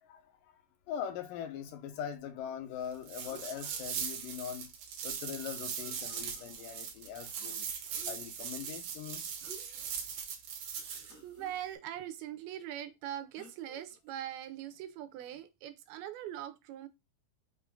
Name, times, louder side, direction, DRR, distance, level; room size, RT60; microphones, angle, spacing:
voice 1, 0.0-0.6 0.9-4.7 5.0-7.7 8.1-9.2, left 9 dB, 75° left, 2.2 m, -41 dB
sound 1, 3.0-11.1, right 7 dB, 70° right, 2.1 m, -40 dB
sound 2, 3.2-3.8 5.5-5.6 5.7-6.7 7.8-8.5 9.4-9.9 10.4-10.5 11.0-11.5 13.3-14.2 15.2-15.4, right 2 dB, 50° left, 1.2 m, -55 dB
voice 2, 10.8-16.9, right 11 dB, 90° right, 2.5 m, -42 dB
5.9 x 2.5 x 3.5 m
omnidirectional pair, 4.4 m